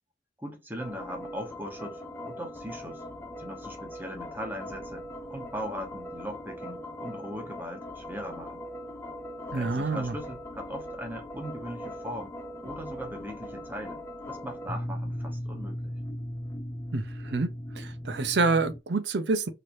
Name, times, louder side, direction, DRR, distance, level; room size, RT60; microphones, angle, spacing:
voice 1, 0.4-3.0 3.4-8.6 9.5-12.3 12.6-14.0 14.3-15.9, equal, 10° right, 1.0 m, -39 dB
sound 1, 0.8-18.8, equal, 15° left, 0.4 m, -39 dB
voice 2, 9.5-10.1 16.9-17.5 17.8-19.5, right 3 dB, 65° right, 0.6 m, -27 dB
3.2 x 2.8 x 2.6 m
head